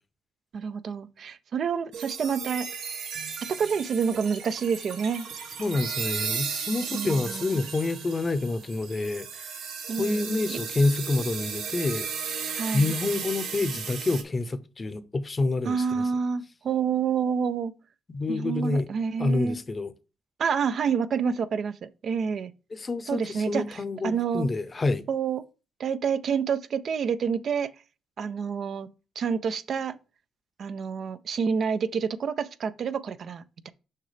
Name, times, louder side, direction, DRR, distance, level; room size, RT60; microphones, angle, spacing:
voice 1, 0.5-2.7 3.6-5.3 6.9-7.6 9.9-10.6 12.6-12.9 15.6-17.7 18.3-19.6 20.4-22.5 23.1-24.5 25.1-25.4 25.8-27.7 28.2-28.9 29.2-30.0 30.6-33.7, right 6 dB, 55° right, 0.4 m, -28 dB
sound 1, 1.9-14.2, right 6 dB, 85° right, 1.2 m, -35 dB
voice 2, 5.6-9.5 10.0-12.1 12.7-16.0 18.1-18.9 19.2-19.9 22.7-25.0, left 3 dB, 30° left, 0.7 m, -28 dB
6.5 x 5.6 x 3.3 m
cardioid pair, 90°, 0 cm